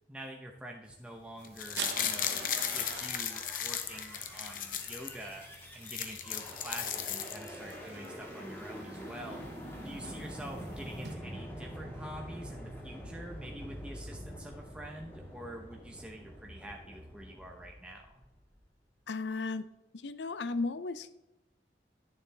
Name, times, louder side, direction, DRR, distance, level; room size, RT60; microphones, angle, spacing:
voice 1, 0.1-5.4 5.7-9.4 9.8-18.2, equal, 5° right, 0 dB, 0.8 m, -46 dB
sound 1, 1.4-5.1 5.5-5.6 5.8-7.7 8.0-8.1, left 9 dB, 50° left, 0.8 m, -36 dB
sound 2, 1.4-11.1, right 6 dB, 80° right, 1.0 m, -48 dB
sound 3, 1.8-18.5, equal, 15° left, 2.0 m, -46 dB
voice 2, 19.1-19.7 19.9-21.1, left 3 dB, 90° left, 13 dB, 0.6 m, -35 dB
11.5 x 7.0 x 3.4 m, 0.99 s
head